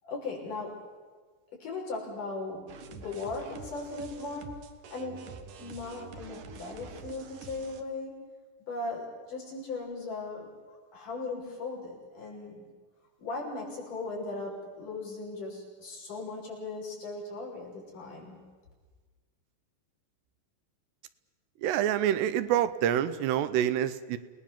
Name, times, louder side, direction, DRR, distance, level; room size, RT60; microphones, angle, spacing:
voice 1, 0.0-0.8 1.5-4.6 4.9-8.2 8.7-12.7 13.2-18.4, left 3 dB, 50° left, -3 dB, 7.4 m, -38 dB
sound 1, 2.7-7.8, right 5 dB, 60° right, 2.4 m, -47 dB
voice 2, 21.6-24.2, right 10 dB, 85° right, 13 dB, 2.9 m, -27 dB
29.0 x 19.5 x 7.3 m, 1.4 s
omnidirectional pair, 4.8 m